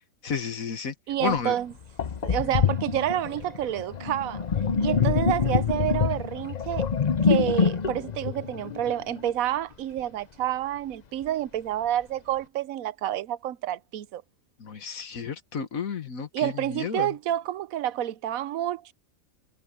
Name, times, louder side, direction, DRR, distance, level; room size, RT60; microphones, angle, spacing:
voice 1, 0.2-0.9 1.2-1.6 14.6-17.1, left 6 dB, 85° left, 1.9 m, -31 dB
voice 2, 1.1-1.7 2.2-4.4 4.8-6.9 7.2-14.2 16.3-18.9, right 12 dB, 85° right, 1.1 m, -29 dB
Sink (filling or washing), 1.3-1.4 2.0-9.3, left 6 dB, 40° left, 0.6 m, -26 dB
omnidirectional pair, 1.4 m